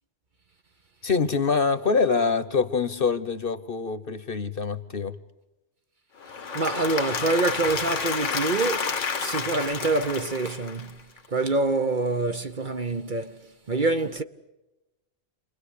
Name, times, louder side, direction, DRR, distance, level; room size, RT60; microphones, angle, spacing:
voice 1, 1.0-5.2, left 5 dB, 50° left, 1.2 m, -25 dB
Applause / Crowd, 6.2-11.2, left 5 dB, 85° left, 1.7 m, -30 dB
voice 2, 6.5-14.2, right 3 dB, 45° right, 1.1 m, -26 dB
28.5 x 21.5 x 8.4 m
omnidirectional pair, 1.2 m